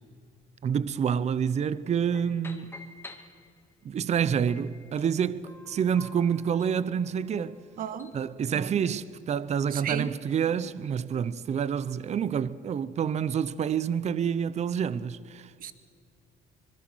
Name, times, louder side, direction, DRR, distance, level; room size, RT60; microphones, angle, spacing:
voice 1, 0.6-2.7 3.8-7.6 8.1-15.7, right 7 dB, 40° right, 0.8 m, -28 dB
sound 1, 2.1-3.8 4.5-8.3, left 2 dB, 15° left, 2.2 m, -50 dB
voice 2, 7.8-8.1 8.5-8.8 9.7-10.1 15.6-15.7, right 9 dB, 55° right, 1.6 m, -34 dB
25.5 x 22.0 x 6.3 m
cardioid pair, 110°, 17 cm